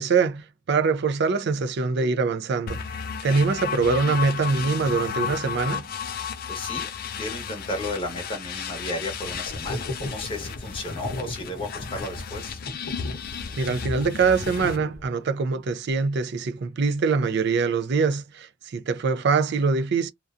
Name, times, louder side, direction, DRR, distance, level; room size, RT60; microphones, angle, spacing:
voice 1, 0.0-2.8 3.2-5.8 13.6-20.1, right 4 dB, 50° right, 0.4 m, -23 dB
sound 1, 2.7-14.8, left 7 dB, 45° left, 0.3 m, -34 dB
voice 2, 6.0-12.6, left 1 dB, 25° left, 0.9 m, -34 dB
sound 2, 9.2-15.3, left 1 dB, 65° left, 0.8 m, -36 dB
2.5 x 2.2 x 2.4 m
head